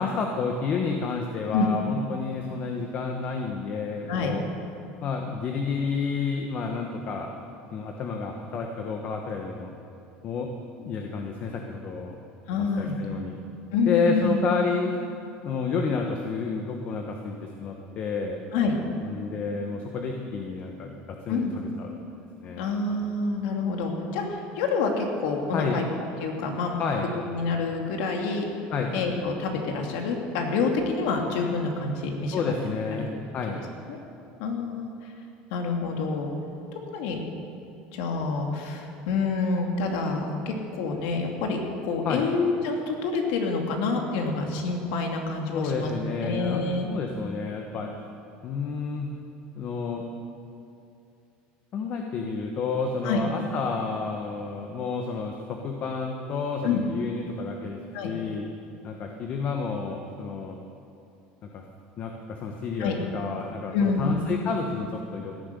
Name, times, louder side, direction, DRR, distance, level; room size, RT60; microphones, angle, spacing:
voice 1, 0.0-4.4 5.0-7.3 7.7-9.7 10.2-10.5 10.8-12.2 12.8-13.4 13.9-15.0 15.4-18.4 19.0-21.9 22.4-22.7 25.5-25.8 26.8-27.1 28.7-28.9 32.3-33.6 42.0-42.3 45.5-47.9 48.4-49.1 49.5-50.1 51.7-57.8 58.0-58.5 58.8-60.6 61.5-61.6 62.0-65.4, left 4 dB, 40° left, 3 dB, 1.3 m, -30 dB
voice 2, 12.5-13.0 13.7-14.5 18.5-18.7 21.3-21.6 22.6-26.8 27.3-28.4 28.9-32.4 33.0-33.1 33.9-34.0 34.4-35.1 35.5-36.3 36.9-37.2 37.9-45.9 46.2-46.9 53.0-53.2 56.6-56.8 57.9-58.1 62.8-63.0 63.7-64.2, left 4 dB, 80° left, 2 dB, 2.5 m, -27 dB
17.0 x 10.5 x 6.9 m, 2.7 s
cardioid pair, 135°, 4 cm